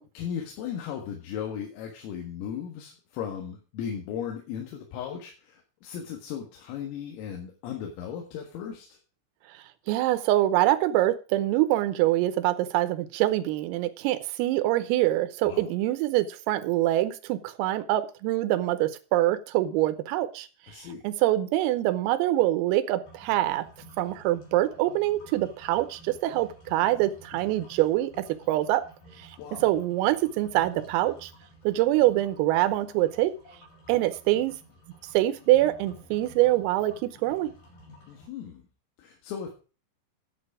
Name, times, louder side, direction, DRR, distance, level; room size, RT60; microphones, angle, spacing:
voice 1, 0.2-9.0 15.5-15.7 20.7-21.0 29.4-29.7 38.1-38.6 39.0-39.5, left 8 dB, 85° left, 2 dB, 4.3 m, -36 dB
voice 2, 9.9-20.5 21.0-23.7 24.0-28.9 29.2-29.3 29.6-31.3 31.7-33.3 33.9-34.6 35.2-37.5, right 15 dB, 90° right, 11 dB, 3.6 m, -25 dB
sound 1, 23.0-38.3, equal, 45° left, 4.9 m, -52 dB
11.0 x 8.3 x 4.9 m, 0.35 s
omnidirectional pair, 5.9 m